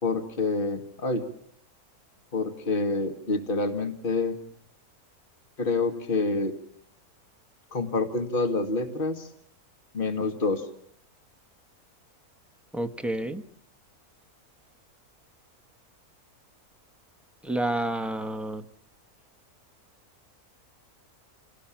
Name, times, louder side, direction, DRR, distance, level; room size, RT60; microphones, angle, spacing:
voice 1, 0.0-1.2 2.3-4.4 5.6-6.5 7.7-9.3 9.9-10.7, left 3 dB, 35° left, 5 dB, 2.2 m, -27 dB
voice 2, 12.7-13.4 17.4-18.6, right 1 dB, ahead, 7 dB, 1.1 m, -29 dB
28.5 x 18.5 x 7.3 m, 0.64 s
omnidirectional pair, 1.6 m